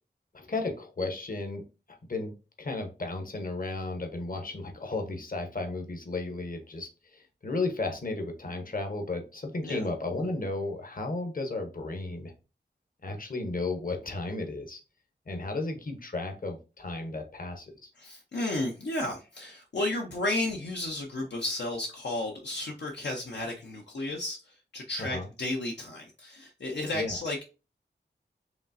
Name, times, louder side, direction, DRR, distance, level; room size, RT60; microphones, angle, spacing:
voice 1, 0.3-1.6 2.1-12.3 13.0-14.8 15.3-17.9 25.0-25.3 26.9-27.2, left 2 dB, 50° left, 4 dB, 1.0 m, -34 dB
voice 2, 18.0-27.4, left 1 dB, 70° left, 1 dB, 0.7 m, -33 dB
5.0 x 3.1 x 2.6 m, 0.32 s
wide cardioid pair, 60°, 18 cm